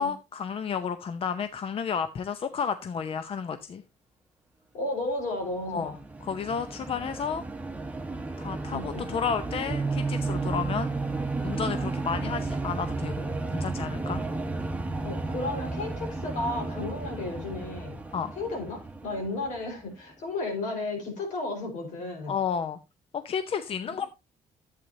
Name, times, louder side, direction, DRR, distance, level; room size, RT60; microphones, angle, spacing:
voice 1, 0.0-3.8 5.7-5.9 6.2-7.4 8.4-11.1 11.4-14.2 18.1-18.3 22.3-22.8 23.1-24.1, left 6 dB, 50° left, 11 dB, 0.7 m, -32 dB
voice 2, 4.7-6.0 8.7-9.1 15.0-18.0 18.3-22.4 23.8-24.1, left 2 dB, 80° left, 1 dB, 4.6 m, -33 dB
sound 1, 5.4-19.9, right 2 dB, 10° right, 1.3 m, -35 dB
Bass guitar, 9.7-16.0, right 4 dB, 25° right, 1.9 m, -34 dB
11.0 x 8.4 x 2.7 m, 0.24 s
cardioid pair, 85°, 13 cm